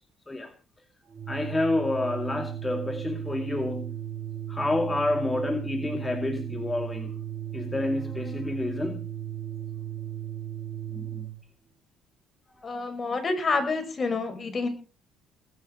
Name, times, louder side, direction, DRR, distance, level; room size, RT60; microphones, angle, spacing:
Organ, 1.1-11.4, right 11 dB, 30° right, 2.4 m, -36 dB
voice 1, 1.3-4.0 4.5-7.2 7.5-9.0 10.9-11.3 12.6-12.7, left 2 dB, 15° left, 7 dB, 2.2 m, -29 dB
voice 2, 12.6-14.7, left 3 dB, 35° left, 7 dB, 5.8 m, -28 dB
20.0 x 10.0 x 5.4 m, 0.37 s
cardioid pair, 90°, 0 cm